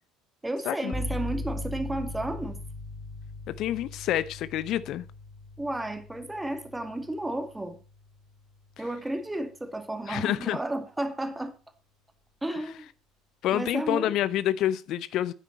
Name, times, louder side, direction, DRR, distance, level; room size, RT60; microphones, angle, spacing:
voice 1, 0.4-2.6 5.6-7.8 8.8-11.5 12.4-12.9 13.5-14.1, right 1 dB, 10° right, 2.3 m, -32 dB
sound 1, 0.9-8.6, left 1 dB, 30° left, 4.5 m, -39 dB
voice 2, 3.5-5.0 10.1-10.6 13.4-15.3, left 12 dB, 50° left, 0.6 m, -28 dB
12.0 x 9.8 x 4.3 m
figure-of-eight pair, 60°, 0 cm